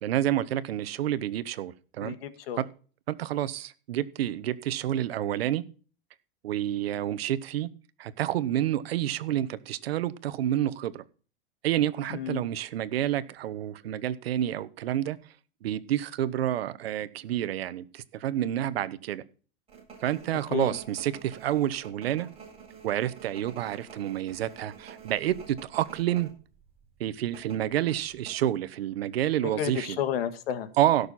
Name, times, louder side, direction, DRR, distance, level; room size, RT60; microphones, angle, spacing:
voice 1, 0.0-2.1 2.6-2.7 3.1-5.6 6.4-7.7 8.0-11.0 11.6-15.2 15.6-19.2 20.0-22.3 22.8-26.3 27.0-30.0 30.8-31.1, right 12 dB, 90° right, 15 dB, 1.2 m, -29 dB
voice 2, 2.0-2.6 12.1-12.5 20.5-20.8 29.4-30.7, left 10 dB, 80° left, 11 dB, 1.9 m, -32 dB
sound 1, 19.7-26.3 26.6-26.8 27.3-28.3, right 6 dB, 20° right, 7.4 m, -47 dB
17.0 x 6.7 x 4.2 m, 0.39 s
supercardioid pair, 140°, 29 cm